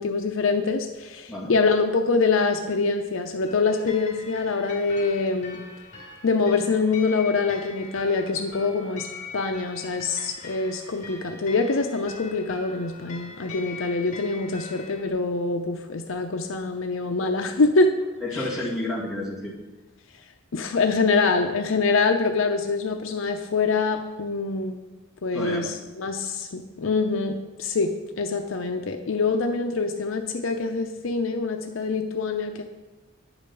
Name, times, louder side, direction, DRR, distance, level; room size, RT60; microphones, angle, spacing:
voice 1, 0.0-5.6 6.2-9.1 9.3-17.9 18.3-18.5 20.5-24.8 25.2-32.6, left 4 dB, 75° left, 5 dB, 0.6 m, -25 dB
sound 1, 3.4-15.1, left 4 dB, 35° left, 2.2 m, -42 dB
voice 2, 18.2-19.5 25.3-25.8, left 1 dB, ahead, -4 dB, 1.9 m, -30 dB
9.8 x 5.0 x 6.8 m, 1.1 s
head